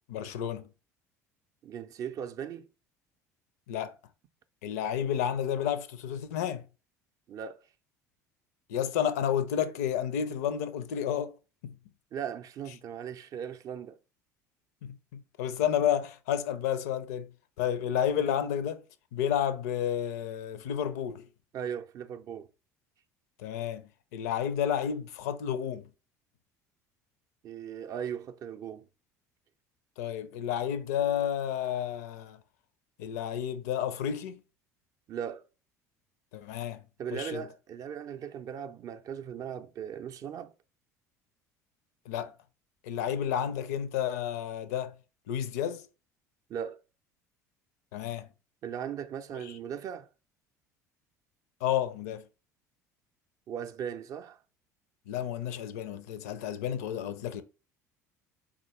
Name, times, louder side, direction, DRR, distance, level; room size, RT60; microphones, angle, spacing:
voice 1, 0.1-0.7 3.7-4.0 4.6-6.6 8.7-11.4 11.6-11.8 14.8-17.3 17.6-18.8 19.1-21.3 23.4-25.9 30.0-32.4 33.0-34.4 36.3-36.8 37.1-37.5 42.1-42.3 42.8-44.9 45.3-45.9 47.9-48.3 49.4-49.6 51.6-52.3 55.1-57.4, left 9 dB, 65° left, 0.5 m, -31 dB
voice 2, 1.6-2.7 7.3-7.6 12.1-14.0 21.5-22.5 27.4-28.9 35.1-35.4 37.0-40.5 46.5-46.8 48.6-50.1 53.5-54.4, right 8 dB, 40° right, 0.4 m, -38 dB
3.8 x 3.7 x 3.1 m
figure-of-eight pair, 60°, 9 cm